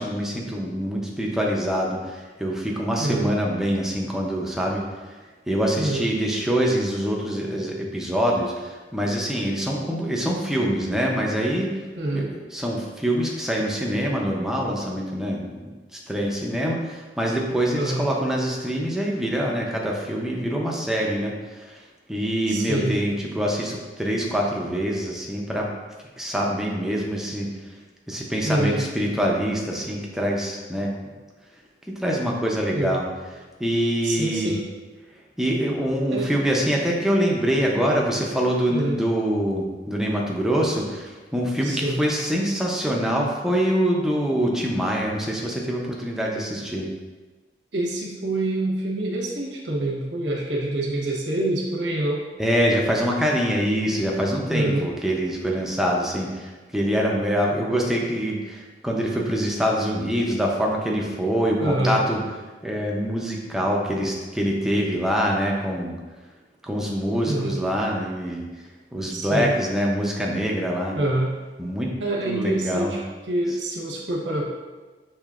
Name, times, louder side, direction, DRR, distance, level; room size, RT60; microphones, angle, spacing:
voice 1, 0.0-4.8 5.5-11.7 12.1-21.8 22.1-25.7 26.2-27.5 28.1-30.9 32.0-33.0 33.6-34.6 35.4-46.9 52.4-62.2 62.6-65.9 66.6-68.4 68.9-71.0 71.6-71.9 72.2-72.9, equal, 5° right, -2 dB, 0.6 m, -25 dB
voice 2, 3.0-3.3 5.8-6.1 12.0-12.3 17.7-18.1 22.5-22.9 28.4-28.8 32.7-33.0 34.0-34.6 36.1-36.3 38.7-39.0 41.6-42.0 47.7-52.2 54.5-54.9 61.6-62.0 67.2-67.6 69.1-69.6 70.9-71.3 72.0-73.0 73.3-74.5, right 2 dB, 85° right, -1 dB, 1.0 m, -26 dB
6.5 x 3.2 x 2.4 m, 1.3 s
head